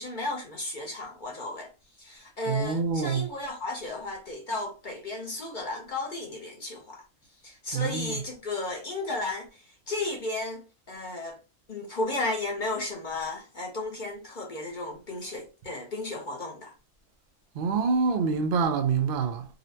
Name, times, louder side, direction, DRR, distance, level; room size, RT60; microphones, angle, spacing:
voice 1, 0.0-1.7 2.0-7.0 7.4-11.4 11.7-16.7, left 2 dB, 50° left, 0.6 m, -34 dB
voice 2, 2.5-3.3 7.7-8.2 17.6-19.5, right 5 dB, 80° right, 0.5 m, -26 dB
3.9 x 2.1 x 2.6 m
omnidirectional pair, 1.5 m